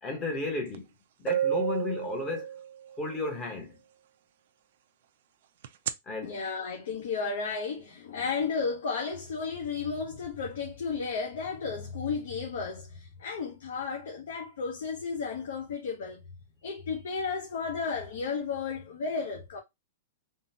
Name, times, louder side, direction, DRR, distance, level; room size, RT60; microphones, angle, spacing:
voice 1, 0.0-0.9 1.2-2.5 3.0-3.8 6.1-6.4, left 3 dB, 15° left, 0.8 m, -33 dB
sound 1, 0.7-0.8 1.3-3.0 5.6-5.9, right 10 dB, 50° right, 0.3 m, -30 dB
voice 2, 6.2-16.2 16.6-19.6, left 5 dB, 65° left, 0.7 m, -33 dB
3.6 x 2.1 x 2.6 m
supercardioid pair, 175°, 0 cm